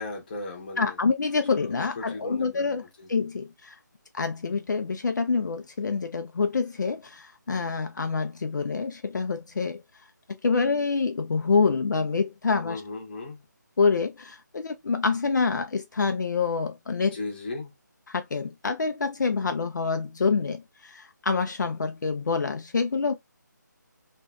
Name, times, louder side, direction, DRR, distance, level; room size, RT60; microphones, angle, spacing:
voice 1, 0.0-1.0 1.6-3.1 12.6-13.4 17.1-17.7, left 3 dB, 30° left, 0.8 m, -37 dB
voice 2, 0.8-2.8 3.1-3.8 4.1-9.8 10.4-12.8 13.8-17.2 18.1-23.1, left 4 dB, 70° left, 0.4 m, -26 dB
2.5 x 2.2 x 2.3 m
figure-of-eight pair, 160°, 10 cm